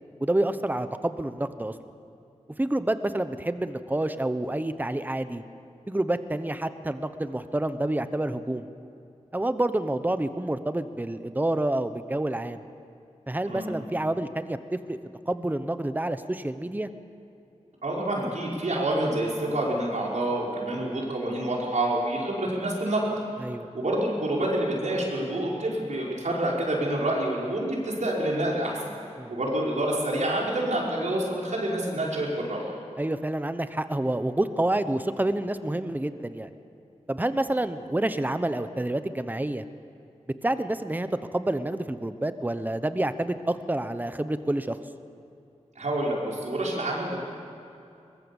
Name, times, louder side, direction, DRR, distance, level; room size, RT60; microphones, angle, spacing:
voice 1, 0.2-1.7 2.6-5.4 5.9-8.7 9.3-12.6 13.3-15.0 15.3-16.9 23.4-23.7 29.2-29.3 33.0-36.5 37.1-39.6 40.4-41.1 41.3-44.8, right 1 dB, 15° right, 11 dB, 0.9 m, -28 dB
voice 2, 17.8-23.0 23.7-28.9 29.3-32.7 45.8-47.2, right 1 dB, 75° right, -3 dB, 5.3 m, -27 dB
22.5 x 21.5 x 7.2 m, 2.6 s
wide cardioid pair, 95°, 12 cm